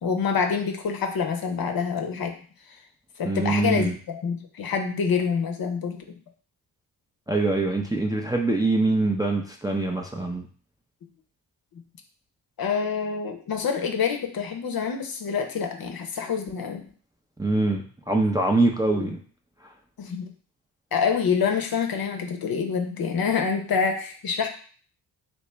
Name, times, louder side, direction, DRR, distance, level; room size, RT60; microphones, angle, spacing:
voice 1, 0.0-2.3 3.2-6.2 12.6-16.8 18.9-19.1 20.0-20.3 20.9-24.5, left 6 dB, 50° left, 5 dB, 0.8 m, -26 dB
voice 2, 3.2-4.0 7.3-10.5 17.4-19.2, right 2 dB, 10° right, 0 dB, 0.6 m, -24 dB
3.0 x 2.9 x 3.3 m, 0.43 s
supercardioid pair, 50°, 47 cm